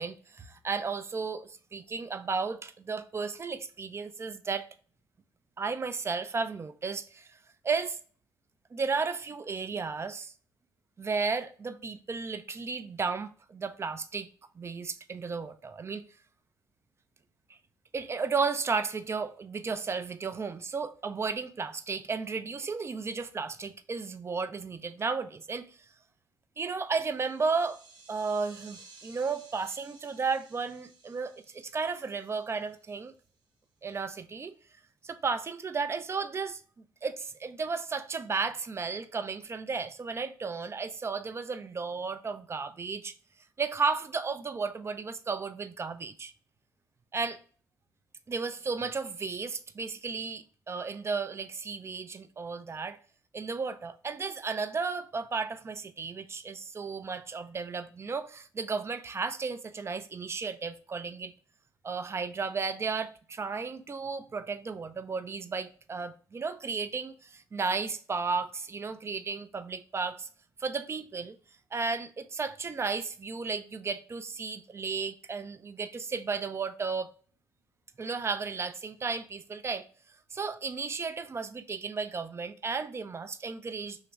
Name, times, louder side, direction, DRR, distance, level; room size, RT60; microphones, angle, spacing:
voice 1, 0.0-4.7 5.6-7.3 7.6-8.0 8.7-10.3 11.0-14.3 14.6-16.0 17.9-25.8 26.6-27.8 28.1-33.1 33.8-34.5 35.0-36.6 37.0-43.1 43.6-46.3 47.1-47.4 48.3-53.0 53.3-61.3 61.8-70.3 70.6-71.4 71.7-77.1 78.0-79.9 80.3-84.0, right 4 dB, 30° right, 0.4 m, -34 dB
sound 1, 27.1-33.1, right 4 dB, 55° right, 0.9 m, -56 dB
2.9 x 2.4 x 3.3 m
hypercardioid pair, 45°, 9 cm